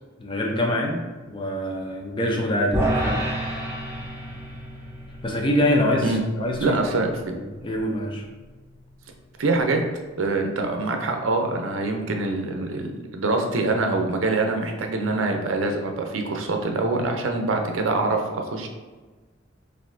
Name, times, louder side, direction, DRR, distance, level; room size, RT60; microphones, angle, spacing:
voice 1, 0.2-1.0 1.3-3.2 5.2-6.8 7.3-8.2, left 1 dB, 25° left, 0 dB, 0.5 m, -25 dB
sound 1, 2.7-9.1, right 1 dB, 15° right, 0.7 m, -31 dB
voice 2, 6.6-7.3 9.4-9.8 10.2-18.7, right 3 dB, 85° right, 3 dB, 0.5 m, -24 dB
4.1 x 2.6 x 2.6 m, 1.3 s
head